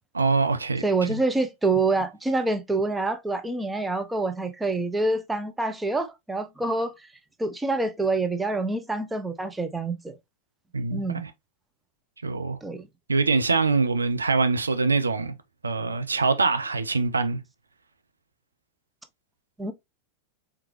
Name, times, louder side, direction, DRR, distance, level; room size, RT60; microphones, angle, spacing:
voice 1, 0.1-0.8 1.1-1.2 10.7-11.3 12.2-12.6 13.1-15.3 15.6-17.4, right 4 dB, 75° right, 0.6 m, -24 dB
voice 2, 0.8-6.9 7.4-10.2 10.9-11.2 12.6-12.9 19.6-19.7, right 3 dB, 10° right, 0.7 m, -26 dB
4.6 x 3.7 x 3.2 m
figure-of-eight pair, 90°, 0 cm